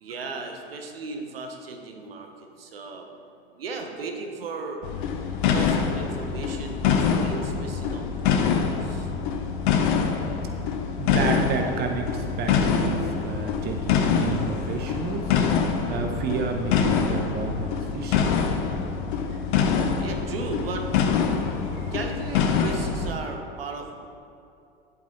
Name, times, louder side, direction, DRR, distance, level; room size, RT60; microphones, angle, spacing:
voice 1, 0.0-2.3 2.6-3.1 3.6-4.8 5.5-9.1 20.0-20.9 21.9-24.1, right 3 dB, 70° right, 4 dB, 1.1 m, -36 dB
sound 1, 4.8-23.1, left 6 dB, 55° left, 0.9 m, -25 dB
voice 2, 11.0-18.3 19.3-19.4, right 5 dB, 30° right, 4 dB, 1.0 m, -30 dB
10.5 x 8.3 x 4.0 m, 2.6 s
figure-of-eight pair, 75°, 31 cm